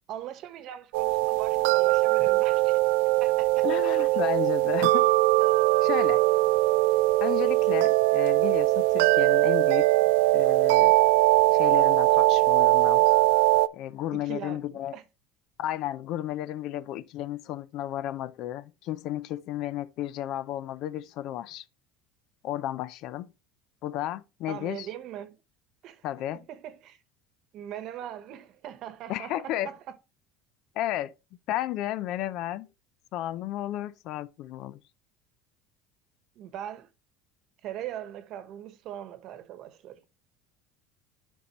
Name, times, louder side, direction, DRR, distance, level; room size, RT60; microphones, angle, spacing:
voice 1, 0.1-2.8 3.2-3.6 14.1-14.6 14.9-15.0 24.5-25.3 25.8-26.0 26.5-27.0 27.5-29.8 36.4-36.9 37.6-40.0, right 11 dB, 55° right, 1.1 m, -40 dB
sound 1, 0.9-13.7, right 19 dB, 85° right, 0.4 m, -21 dB
voice 2, 3.6-5.1 5.8-6.2 7.2-9.9 10.3-11.0 11.5-13.0 13.7-15.0 15.6-21.7 22.4-23.3 23.8-24.9 26.0-26.5 29.1-29.7 30.7-31.1 31.5-32.7 33.1-34.8, left 13 dB, 55° left, 0.5 m, -33 dB
10.0 x 5.3 x 3.0 m
cardioid pair, 130°, 0 cm